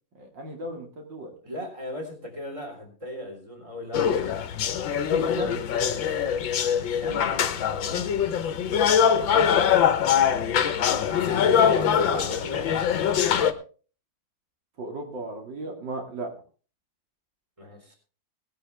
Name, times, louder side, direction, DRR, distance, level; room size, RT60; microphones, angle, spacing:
voice 1, 0.1-1.3 5.1-5.6 7.9-8.0 8.7-8.9 14.8-16.3, right 2 dB, 70° right, 2 dB, 3.0 m, -36 dB
voice 2, 1.4-4.3 6.7-8.1 10.1-11.4 11.8-12.7 17.6-18.0, equal, 15° right, 3 dB, 3.8 m, -39 dB
sound 1, 3.9-13.5, left 8 dB, 85° left, 1.8 m, -23 dB
18.5 x 11.0 x 3.4 m, 0.38 s
omnidirectional pair, 2.0 m